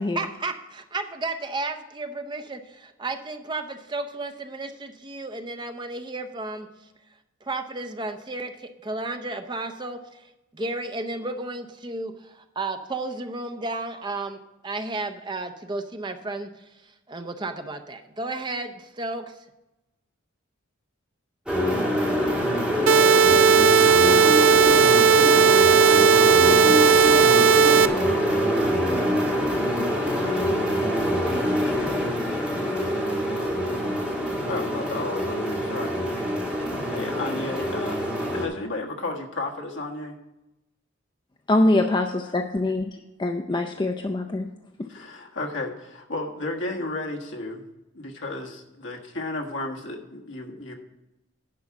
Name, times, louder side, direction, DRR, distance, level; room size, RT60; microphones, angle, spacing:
voice 1, 0.1-6.7 7.4-19.4, right 2 dB, 20° right, 7 dB, 0.6 m, -33 dB
sound 1, 21.5-38.4, equal, 5° right, 2.2 m, -24 dB
sound 2, 22.9-27.9, right 6 dB, 75° right, 0.5 m, -16 dB
voice 2, 34.3-36.2 36.9-38.0 38.3-40.1 42.2-42.3 44.9-47.6 47.9-50.7, left 2 dB, 65° left, 1 dB, 1.4 m, -33 dB
voice 3, 41.5-42.9 43.2-44.5, left 2 dB, 20° left, 5 dB, 0.4 m, -23 dB
10.5 x 4.7 x 7.1 m, 0.96 s
head